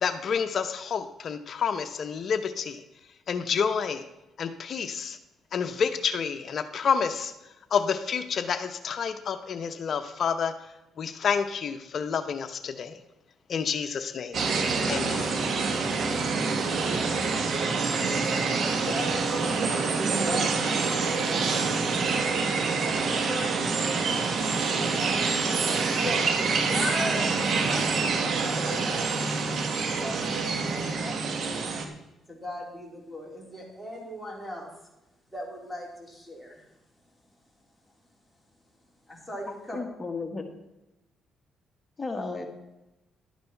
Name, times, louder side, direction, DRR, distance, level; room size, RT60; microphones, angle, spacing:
voice 1, 0.0-2.8 3.3-4.0 4.4-5.2 5.5-7.3 7.7-10.5 11.0-13.0 13.5-14.4 14.9-15.3, left 6 dB, 55° left, 9 dB, 0.8 m, -29 dB
sound 1, 14.3-31.8, right 4 dB, 60° right, 1.6 m, -26 dB
voice 2, 16.2-17.8 18.9-22.1 23.1-25.3 25.7-29.2 29.4-31.7 32.3-34.7 35.3-36.6 39.1-39.8, left 1 dB, 5° left, -2 dB, 3.9 m, -39 dB
voice 3, 39.5-40.5 42.0-42.5, left 3 dB, 25° left, 5 dB, 1.6 m, -34 dB
12.0 x 9.3 x 4.6 m, 0.95 s
cardioid pair, 90°, 0 cm